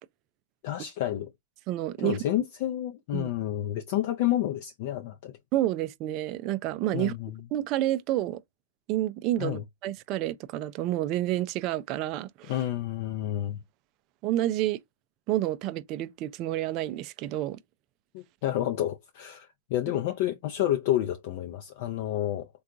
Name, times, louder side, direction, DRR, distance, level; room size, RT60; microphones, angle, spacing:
voice 1, 0.6-1.3 2.0-5.3 6.9-7.4 9.4-9.6 12.4-13.6 18.1-22.5, left 12 dB, 45° left, 0.4 m, -30 dB
voice 2, 1.7-2.2 3.1-3.3 5.5-7.2 7.5-8.4 8.9-12.5 14.2-14.8 15.3-17.6, right 14 dB, 35° right, 0.4 m, -29 dB
3.6 x 2.3 x 2.5 m
hypercardioid pair, 140°, 0 cm